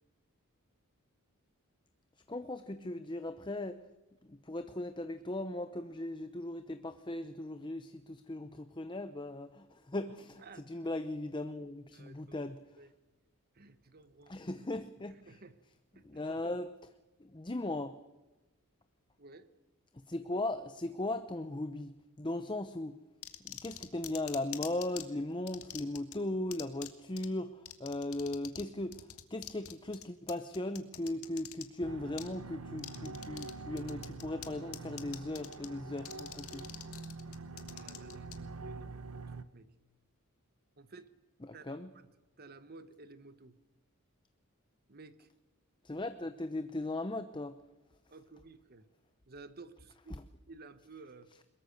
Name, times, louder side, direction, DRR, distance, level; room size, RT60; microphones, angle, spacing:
voice 1, 2.3-3.8 4.3-12.6 14.3-15.4 16.0-16.9 17.2-18.0 19.9-23.0 23.4-36.7 41.4-41.9 45.8-47.6 50.1-50.2, left 1 dB, 20° left, 10 dB, 0.8 m, -38 dB
voice 2, 10.4-10.9 11.9-12.4 12.8-12.9 13.5-14.3 15.3-15.5 15.9-16.3 19.2-19.5 37.7-38.3 38.6-39.7 40.8-41.1 41.5-42.1 42.4-43.6 44.9-45.3 48.1-48.8 49.3-51.3, right 3 dB, 45° right, 12 dB, 1.1 m, -54 dB
sound 1, 23.2-25.0 25.5-26.2 26.5-26.9 27.2-27.3 27.7-28.7 28.9-31.6 32.2-32.3 32.8-33.5 33.8-34.5 34.7-35.7 36.0-38.4, left 12 dB, 75° left, 2.0 m, -44 dB
sound 2, 31.8-39.4, right 3 dB, 80° right, 1.1 m, -45 dB
22.5 x 21.5 x 6.6 m, 1.1 s
head